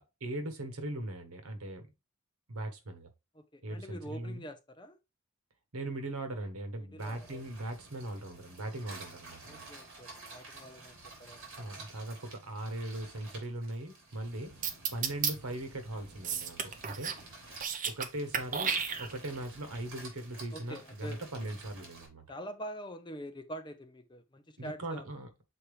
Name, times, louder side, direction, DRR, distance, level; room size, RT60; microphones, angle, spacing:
voice 1, 0.0-1.9 2.5-3.1 3.6-4.4 5.7-9.7 11.6-14.5 14.9-17.2 17.8-22.2 24.6-25.3, right 1 dB, 85° right, 1.3 m, -39 dB
voice 2, 3.3-5.0 6.9-7.4 9.5-11.4 20.5-21.5 22.3-25.0, equal, 20° left, 0.7 m, -45 dB
sound 1, 7.0-22.1, right 3 dB, 60° right, 3.1 m, -51 dB
sound 2, 14.6-15.3 16.2-17.2 17.5-18.1 18.3-19.4, right 6 dB, 35° right, 0.7 m, -32 dB
7.0 x 4.3 x 3.2 m
head